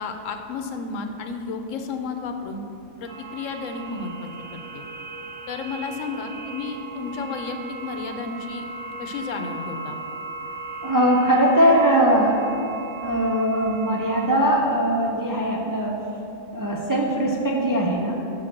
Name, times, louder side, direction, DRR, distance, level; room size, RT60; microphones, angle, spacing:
voice 1, 0.0-2.6 3.0-4.8 5.5-8.6 9.0-10.0, left 4 dB, 90° left, 6 dB, 1.0 m, -32 dB
sound 1, 3.1-14.3, right 3 dB, 75° right, 1.4 m, -37 dB
voice 2, 10.8-12.5 13.0-16.0 16.5-18.2, equal, 30° right, -2 dB, 0.4 m, -20 dB
5.9 x 4.7 x 6.4 m, 2.8 s
omnidirectional pair, 1.3 m